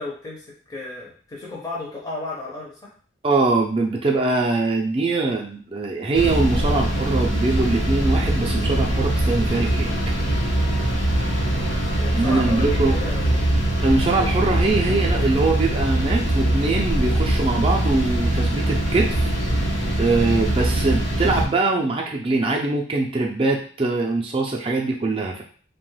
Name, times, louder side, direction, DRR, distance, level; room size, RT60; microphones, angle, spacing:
voice 1, 0.0-2.9 11.9-13.4, left 2 dB, 20° left, -4 dB, 0.5 m, -34 dB
voice 2, 3.2-9.9 12.1-13.0 13.8-19.3 20.0-25.4, right 3 dB, 30° right, 0 dB, 0.4 m, -22 dB
sound 1, 6.1-21.4, right 1 dB, 80° left, 0.9 m, -22 dB
2.9 x 2.2 x 3.1 m, 0.43 s
head